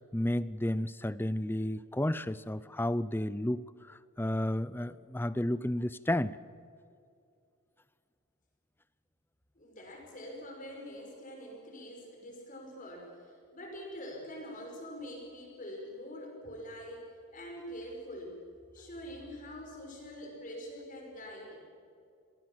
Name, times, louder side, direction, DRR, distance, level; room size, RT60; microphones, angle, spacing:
voice 1, 0.1-6.4, left 1 dB, 10° left, 17 dB, 0.5 m, -32 dB
voice 2, 9.5-17.1 17.3-18.4 18.7-21.6, equal, 35° left, 1 dB, 5.6 m, -45 dB
26.0 x 18.5 x 7.3 m, 2.5 s
head